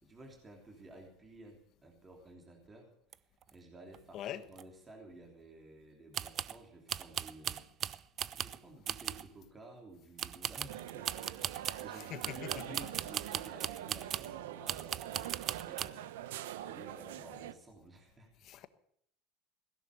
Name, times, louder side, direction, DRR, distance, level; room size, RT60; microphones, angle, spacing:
voice 1, 0.0-8.0 8.3-18.3, right 2 dB, 25° right, 3.4 m, -54 dB
sound 1, 3.1-3.2 3.4-3.5 3.9-4.0 4.6-4.7 6.1-6.6 6.9-8.6 8.9-9.3 10.2-11.9 12.2-14.4 14.7-15.9, right 10 dB, 45° right, 0.5 m, -39 dB
sound 2, 10.7-17.5, right 12 dB, 85° right, 0.8 m, -44 dB
voice 2, 12.1-12.5 18.4-18.7, left 11 dB, 50° left, 1.1 m, -42 dB
16.5 x 11.0 x 6.7 m
supercardioid pair, 95°, 0 cm